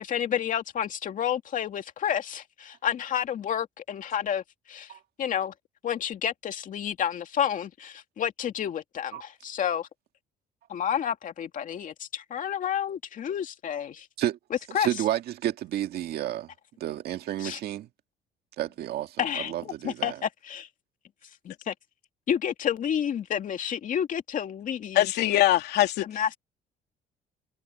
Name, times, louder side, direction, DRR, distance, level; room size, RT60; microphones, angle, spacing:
voice 1, 0.0-4.4 4.7-4.9 5.2-5.5 5.8-9.9 10.7-14.1 14.7-14.9 17.4-17.6 19.2-20.7 21.4-21.7 22.3-25.1 26.0-26.4, left 9 dB, 50° left, 2.4 m, -30 dB
voice 2, 14.7-16.5 16.8-17.9 18.6-20.2, right 12 dB, 70° right, 2.0 m, -31 dB
voice 3, 24.9-26.0, left 14 dB, 80° left, 3.1 m, -22 dB
cardioid pair, 110°, 17 cm